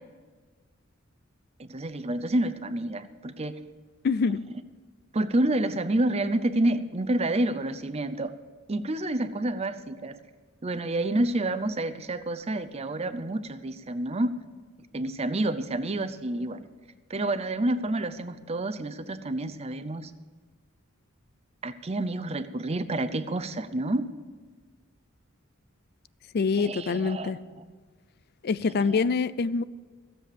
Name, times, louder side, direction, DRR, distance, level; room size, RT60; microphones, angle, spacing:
voice 1, 1.6-3.6 5.1-8.3 8.7-10.2 10.6-14.3 14.9-16.7 17.1-20.1 21.6-24.1 26.6-27.3 27.6-27.7 28.8-29.0, right 1 dB, 30° right, 12 dB, 0.6 m, -29 dB
voice 2, 4.0-4.5 26.3-27.4 28.4-29.6, left 5 dB, 50° left, 18 dB, 0.4 m, -25 dB
15.5 x 7.7 x 6.8 m, 1.4 s
head